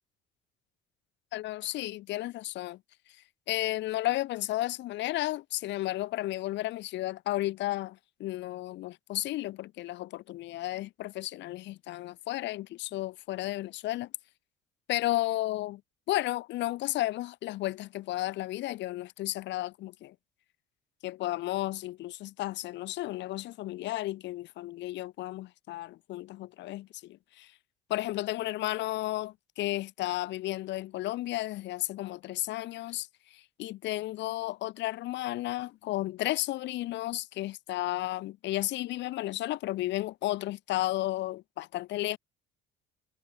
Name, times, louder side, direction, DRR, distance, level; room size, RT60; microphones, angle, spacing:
voice 1, 1.3-2.8 3.5-14.1 14.9-15.8 16.1-20.1 21.0-27.5 27.9-42.2, left 16 dB, 60° left, 0.6 m, -33 dB
supercardioid pair, 80°, 21 cm